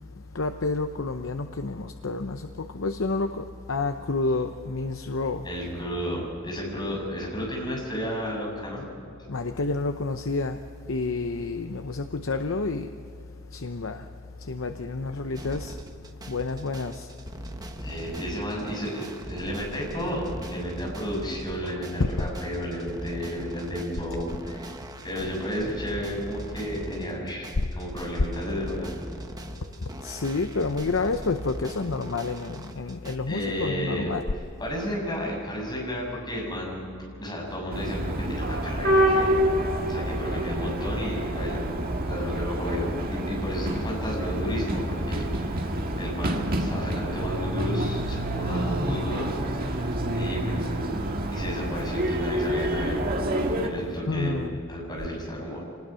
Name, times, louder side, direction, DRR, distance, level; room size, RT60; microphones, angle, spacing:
voice 1, 0.3-5.5 9.3-10.6 10.9-12.9 13.5-14.1 14.4-15.8 16.3-17.1 21.6-21.7 22.2-22.3 29.8-34.2 54.1-54.6, left 3 dB, 70° left, 0.8 m, -29 dB
voice 2, 5.4-8.9 17.8-24.7 25.0-27.5 27.8-28.9 33.3-34.1 34.6-36.9 37.2-39.4 39.9-41.6 42.0-45.7 45.9-49.8 50.1-50.9 51.3-53.0 53.6-55.6, equal, 20° left, 6.7 m, -32 dB
sound 1, 15.3-33.2, right 1 dB, 20° right, 1.1 m, -40 dB
sound 2, 37.7-53.7, right 1 dB, 45° right, 1.9 m, -27 dB
25.5 x 20.0 x 5.7 m
head